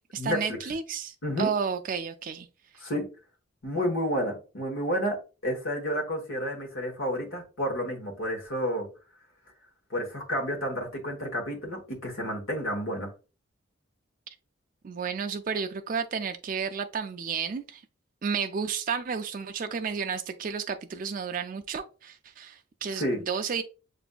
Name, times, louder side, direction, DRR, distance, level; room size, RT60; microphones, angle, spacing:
voice 1, 0.0-2.5 14.8-17.8 18.2-23.6, right 6 dB, 40° right, 0.3 m, -32 dB
voice 2, 3.6-5.2 5.4-8.9 9.9-13.1 22.9-23.2, equal, 75° left, 1.2 m, -30 dB
6.8 x 2.5 x 2.2 m
head